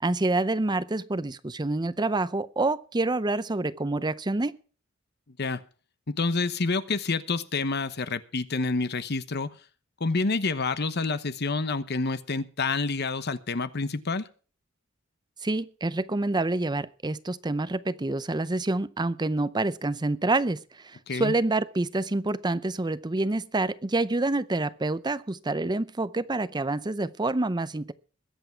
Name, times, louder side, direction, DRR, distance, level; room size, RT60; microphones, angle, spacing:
voice 1, 0.0-4.5 15.4-27.9, right 2 dB, 20° right, 0.6 m, -27 dB
voice 2, 6.1-9.5 10.0-14.3 21.1-21.3, left 3 dB, 55° left, 1.0 m, -28 dB
21.5 x 8.4 x 4.6 m
head